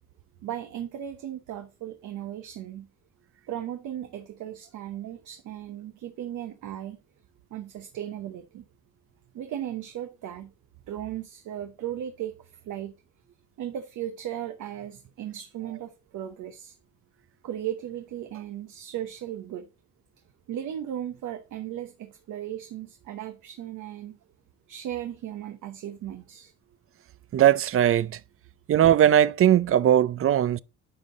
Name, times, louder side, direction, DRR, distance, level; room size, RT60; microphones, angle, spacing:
voice 1, 0.4-2.9 3.5-7.0 7.5-8.6 9.3-10.5 10.9-12.9 13.6-16.8 17.4-19.7 20.5-24.2 24.7-26.5, right 11 dB, 80° right, 1.0 m, -36 dB
voice 2, 27.3-28.2 28.7-30.6, right 10 dB, 45° right, 0.5 m, -19 dB
9.9 x 5.5 x 3.9 m
cardioid pair, 90°, 30 cm